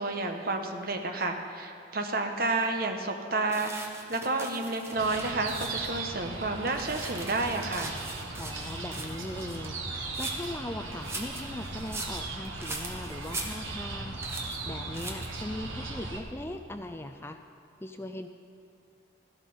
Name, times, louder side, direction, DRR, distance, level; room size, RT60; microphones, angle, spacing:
voice 1, 0.0-3.7 4.1-8.0, right 2 dB, 50° right, 4 dB, 1.1 m, -30 dB
sound 1, 3.5-6.0 6.4-10.5 10.9-13.9 14.2-14.6 14.9-15.4, right 2 dB, 15° right, 1.1 m, -41 dB
sound 2, 5.0-16.2, right 3 dB, 90° right, 1.6 m, -38 dB
voice 2, 8.4-9.8 10.2-14.1 14.6-17.4 17.8-18.3, left 1 dB, 10° left, 7 dB, 0.4 m, -39 dB
14.5 x 12.0 x 5.5 m, 2.6 s
head